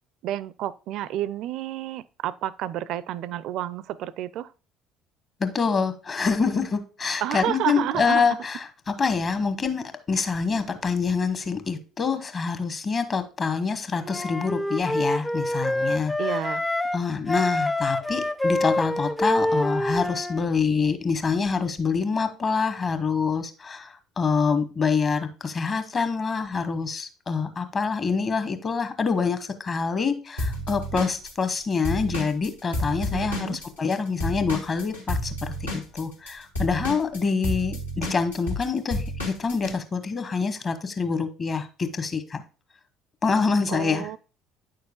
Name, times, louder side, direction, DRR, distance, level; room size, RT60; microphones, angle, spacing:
voice 1, 0.2-4.5 7.2-8.2 16.2-16.6 33.1-33.6 43.7-44.2, right 12 dB, 55° right, 0.4 m, -30 dB
voice 2, 5.4-16.4 16.9-42.4 43.2-44.1, left 5 dB, 35° left, 1.2 m, -26 dB
Wind instrument woodwind instrument, 14.0-17.0 17.3-20.4, left 1 dB, 10° left, 0.4 m, -26 dB
Drum kit / Drum, 30.4-33.9 34.2-39.7, left 1 dB, 85° left, 2.0 m, -30 dB
9.5 x 6.5 x 2.3 m
figure-of-eight pair, 55°, 0 cm